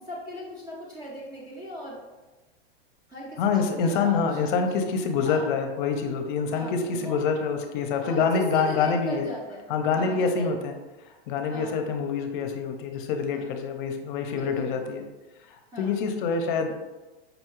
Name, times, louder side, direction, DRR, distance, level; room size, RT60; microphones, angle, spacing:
voice 1, 0.1-2.0 3.1-4.7 5.2-5.5 6.5-7.2 8.0-10.6 11.5-11.9 13.3-13.5 14.3-15.0 15.7-16.0, left 1 dB, 15° right, -4 dB, 0.3 m, -39 dB
voice 2, 3.4-9.3 9.7-10.7 11.1-15.0 15.5-16.7, left 5 dB, 50° left, 5 dB, 0.6 m, -26 dB
5.1 x 2.3 x 3.0 m, 1.1 s
supercardioid pair, 145°, 31 cm